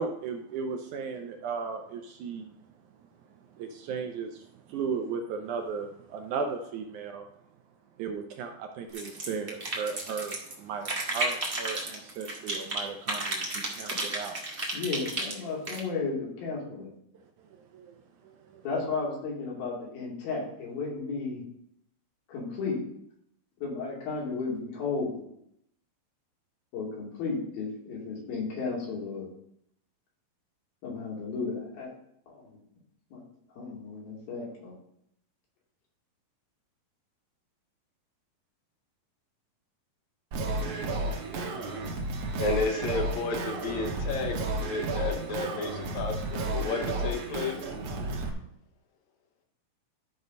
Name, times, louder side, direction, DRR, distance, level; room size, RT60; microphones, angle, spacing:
voice 1, 0.0-2.5 3.5-7.2 8.0-14.4 17.5-18.0 18.2-18.6, right 5 dB, 75° right, 4 dB, 1.9 m, -36 dB
sound 1, 8.9-10.5 10.8-12.8 13.1-15.8, right 2 dB, 45° right, 0.7 m, -32 dB
voice 2, 14.7-16.9 18.6-21.5 22.3-22.8 23.6-25.2 26.7-29.3 30.8-31.9 32.3-32.6 33.1-33.2 33.6-34.7, left 4 dB, 90° left, -4 dB, 4.6 m, -34 dB
Singing, 40.3-48.3, right 2 dB, 60° right, 1.8 m, -32 dB
voice 3, 42.4-44.4 44.7-47.7, left 4 dB, 65° left, 3 dB, 2.1 m, -32 dB
12.5 x 4.2 x 5.2 m, 0.73 s
omnidirectional pair, 4.1 m